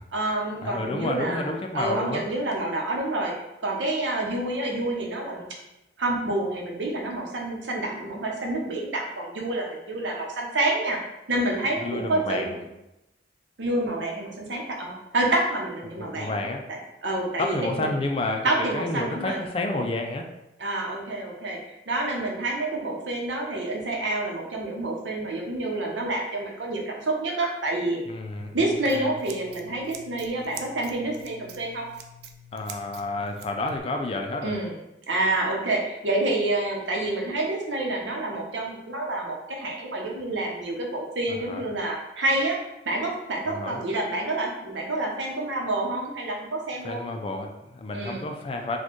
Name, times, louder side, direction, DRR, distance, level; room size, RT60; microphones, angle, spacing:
voice 1, 0.1-1.5 1.7-3.3 3.6-5.5 6.0-11.0 11.3-12.6 13.6-16.3 16.7-17.9 18.4-19.4 20.6-28.0 28.5-31.9 34.4-34.7 35.1-42.6 42.8-47.1 47.9-48.3, right 2 dB, 85° right, 0 dB, 0.8 m, -28 dB
voice 2, 0.6-2.2 11.8-12.6 15.9-16.6 17.4-20.3 28.1-29.1 32.5-34.6 41.3-41.7 43.5-43.8 46.8-48.8, left 2 dB, 30° left, 4 dB, 0.3 m, -30 dB
Scissors, 28.4-33.8, right 3 dB, 60° right, 0.3 m, -45 dB
4.1 x 2.2 x 3.0 m, 0.90 s
head